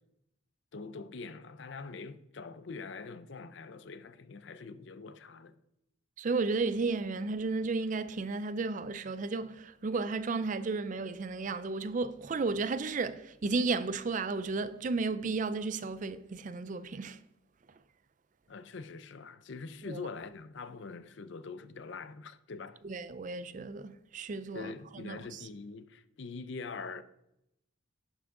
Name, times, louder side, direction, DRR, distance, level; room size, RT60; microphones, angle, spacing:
voice 1, 0.7-5.6 18.5-22.8 24.5-27.0, left 4 dB, 55° left, 0.5 m, -44 dB
voice 2, 6.2-17.2 19.9-20.0 22.8-24.7 25.0-25.2, right 3 dB, 35° right, 0.4 m, -33 dB
11.0 x 5.9 x 3.7 m
head